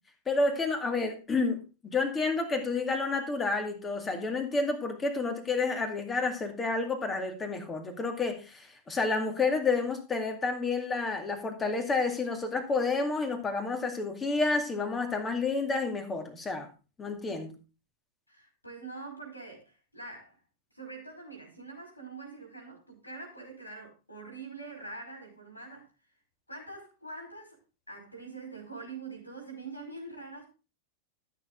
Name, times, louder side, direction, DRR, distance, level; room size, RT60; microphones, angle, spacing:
voice 1, 0.3-16.7 17.0-17.5, left 3 dB, 20° left, 2.2 m, -30 dB
voice 2, 18.3-20.4 20.7-25.8 26.5-27.6 27.9-30.5, right 3 dB, 85° left, 4.9 m, -44 dB
13.0 x 6.7 x 3.9 m
figure-of-eight pair, 90°, 0 cm